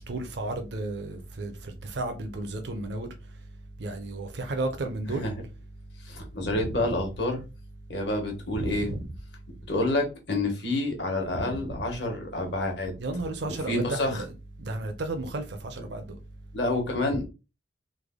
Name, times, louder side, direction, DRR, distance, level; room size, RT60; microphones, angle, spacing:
voice 1, 0.0-3.1 3.8-5.3 6.4-6.8 8.6-9.1 11.4-11.8 13.0-14.3 14.6-16.2 17.1-17.2, right 2 dB, 60° right, 0.5 m, -33 dB
voice 2, 6.0-7.4 7.9-8.9 9.7-12.9 13.7-14.2 16.5-17.3, left 2 dB, 65° left, 1.1 m, -28 dB
3.3 x 2.1 x 3.6 m
head